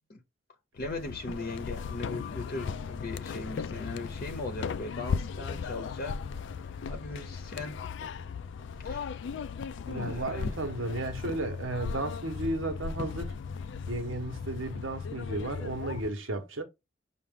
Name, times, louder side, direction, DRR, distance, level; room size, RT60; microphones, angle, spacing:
voice 1, 0.7-6.1 6.5-7.8 8.8-9.3 9.9-10.5, left 2 dB, 50° left, 0.8 m, -39 dB
sound 1, 0.8-16.1, left 6 dB, 65° left, 0.3 m, -37 dB
voice 2, 9.9-13.3 13.9-16.6, right 2 dB, 90° right, 1.1 m, -34 dB
5.9 x 2.5 x 3.6 m
head